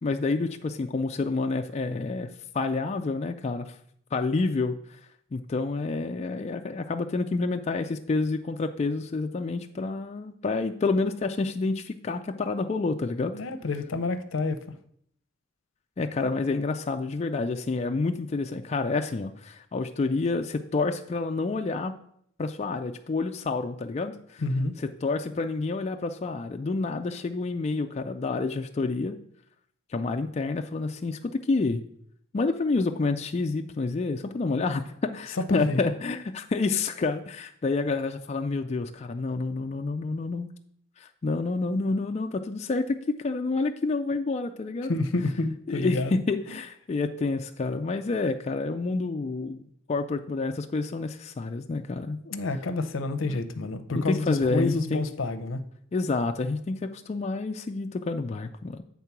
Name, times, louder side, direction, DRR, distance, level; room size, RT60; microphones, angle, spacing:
voice 1, 0.0-2.3 2.5-3.8 4.1-4.8 5.3-13.3 16.0-22.0 22.4-24.4 25.0-29.2 29.9-31.8 32.3-40.5 41.0-44.9 45.7-49.6 49.9-52.2 53.2-53.4 53.9-55.0 55.9-58.8, left 3 dB, 35° left, 5 dB, 0.3 m, -28 dB
voice 2, 13.3-14.6 24.4-24.7 35.3-35.8 44.9-46.2 52.2-55.6, left 3 dB, 75° left, 10 dB, 0.6 m, -29 dB
8.4 x 3.7 x 5.8 m, 0.69 s
head